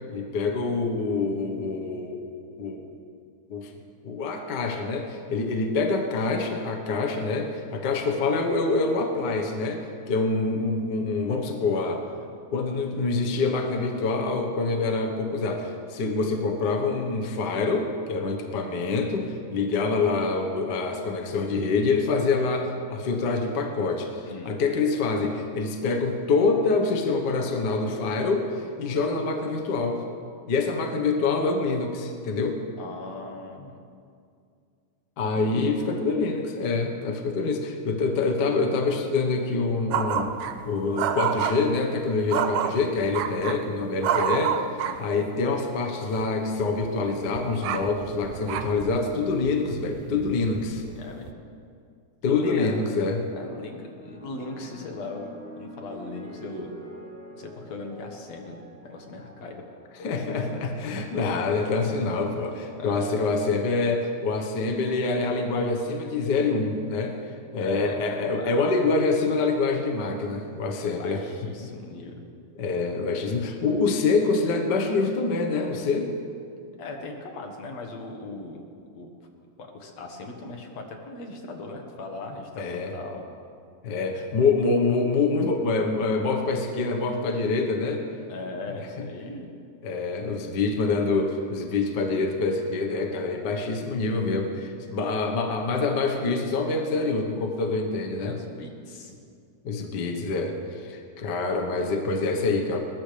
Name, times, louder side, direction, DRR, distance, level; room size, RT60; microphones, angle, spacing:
voice 1, 0.1-2.2 2.6-2.9 3.5-3.7 4.0-12.1 12.5-30.0 30.5-32.6 35.2-40.3 40.6-44.6 45.0-50.8 52.2-53.2 60.0-67.2 67.5-71.2 71.6-71.7 72.6-76.1 82.6-82.9 83.8-88.0 89.0-89.1 89.8-98.3 99.6-102.8, left 3 dB, 50° left, 3 dB, 1.4 m, -26 dB
voice 2, 32.8-33.8 35.3-35.8 44.8-45.1 51.0-51.3 52.2-52.8 53.3-55.3 55.6-56.7 57.4-58.6 58.9-59.6 62.7-63.1 67.6-68.7 70.8-72.2 76.8-78.7 78.9-79.1 79.6-83.2 88.3-89.5 98.2-99.2, left 2 dB, 65° left, 2 dB, 2.7 m, -38 dB
sound 1, 39.9-40.6 40.9-41.7 42.3-43.6 44.0-45.2 46.1-46.3 46.6-51.3, right 8 dB, 80° right, 2.0 m, -30 dB
sound 2, 53.9-62.4 63.3-63.7, right 1 dB, 20° right, 5.6 m, -47 dB
21.0 x 20.5 x 3.4 m, 2.3 s
omnidirectional pair, 3.3 m